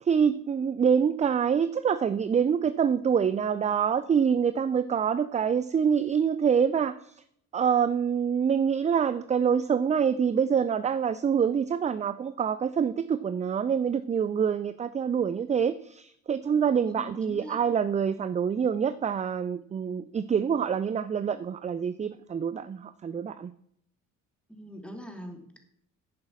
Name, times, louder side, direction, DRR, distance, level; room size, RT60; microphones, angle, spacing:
voice 1, 0.0-7.1 7.5-23.5, right 7 dB, 20° right, 14 dB, 0.5 m, -26 dB
voice 2, 16.8-17.6 24.5-25.6, equal, 5° left, 4 dB, 2.8 m, -42 dB
10.5 x 8.7 x 6.1 m, 0.69 s
figure-of-eight pair, 50°, 38 cm